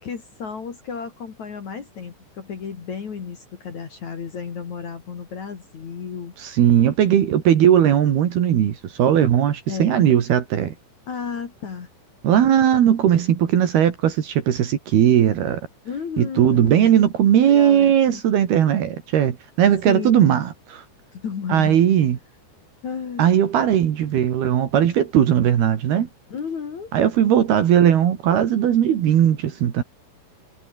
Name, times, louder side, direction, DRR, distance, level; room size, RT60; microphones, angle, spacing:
voice 1, 0.0-6.3 9.7-10.1 11.1-11.9 15.8-16.7 17.5-18.2 19.9-20.2 21.1-21.8 22.8-23.3 26.3-26.9, left 6 dB, 45° left, 3.6 m, -32 dB
voice 2, 6.4-10.7 12.2-15.6 16.2-20.8 21.5-22.2 23.2-26.1 26.9-29.8, right 10 dB, 65° right, 3.8 m, -18 dB
omnidirectional pair, 5.1 m